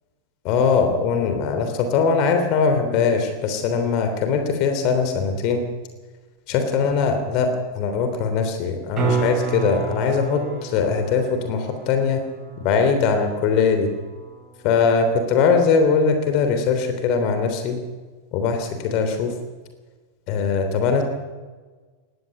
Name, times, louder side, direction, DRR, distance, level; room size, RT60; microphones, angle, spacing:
voice 1, 0.4-5.6 6.5-12.2 12.6-13.9 14.6-17.8 18.3-19.3 20.3-21.0, left 5 dB, 40° left, 6 dB, 3.2 m, -21 dB
sound 1, 8.9-15.0 19.6-19.7, right 5 dB, 30° right, 6.8 m, -31 dB
20.0 x 15.5 x 9.6 m, 1.4 s
figure-of-eight pair, 90°, 0 cm